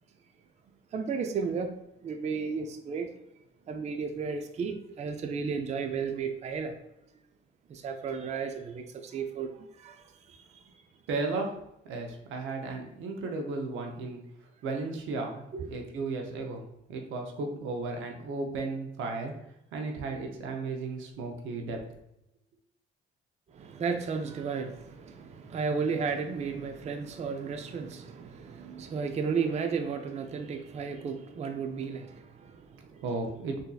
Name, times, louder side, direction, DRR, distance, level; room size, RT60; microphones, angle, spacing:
voice 1, 0.9-1.7 2.0-3.1 3.7-6.7 7.7-10.7 15.5-15.7 23.5-33.1, right 5 dB, 35° right, 6 dB, 0.4 m, -34 dB
voice 2, 11.1-11.5 11.8-14.2 14.6-16.6 16.9-19.3 19.7-21.8 33.0-33.6, right 3 dB, 85° right, 2 dB, 0.6 m, -34 dB
3.8 x 2.7 x 2.3 m, 0.84 s
cardioid pair, 90°, 20 cm